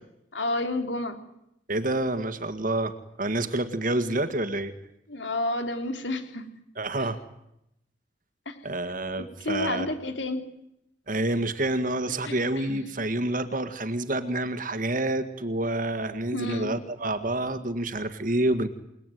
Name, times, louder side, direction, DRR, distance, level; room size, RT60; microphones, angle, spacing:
voice 1, 0.3-1.2 5.1-6.4 8.4-8.5 9.2-10.5 12.2-12.8 16.3-16.7, left 2 dB, 80° left, 7 dB, 3.4 m, -30 dB
voice 2, 1.7-4.7 6.8-7.2 8.6-9.9 11.1-18.7, right 1 dB, 45° right, 11 dB, 1.9 m, -28 dB
28.5 x 20.0 x 9.4 m, 0.80 s
head